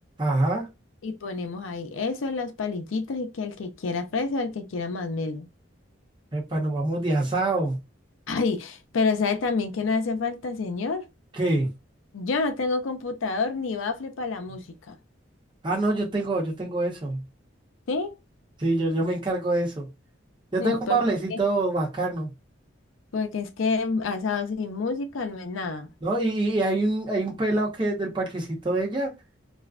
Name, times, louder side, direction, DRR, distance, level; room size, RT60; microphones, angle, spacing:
voice 1, 0.2-0.7 6.3-7.8 11.3-11.7 15.6-17.2 18.6-19.9 20.5-22.3 26.0-29.1, right 2 dB, 25° right, 0.7 m, -25 dB
voice 2, 1.0-5.5 8.3-11.1 12.1-14.9 17.9-18.1 20.6-21.0 21.3-21.4 23.1-25.9, left 4 dB, 85° left, 0.5 m, -28 dB
2.4 x 2.1 x 2.4 m
head